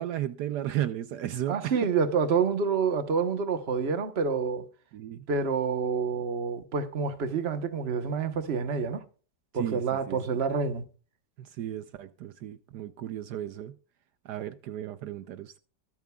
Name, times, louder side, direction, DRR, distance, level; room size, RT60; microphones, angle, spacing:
voice 1, 0.0-1.9 4.9-5.3 9.5-10.2 11.4-13.8 14.2-15.6, right 12 dB, 75° right, 1.2 m, -34 dB
voice 2, 1.5-4.7 5.3-9.0 9.5-10.8, right 5 dB, 40° right, 1.2 m, -28 dB
23.5 x 8.8 x 2.3 m
omnidirectional pair, 1.8 m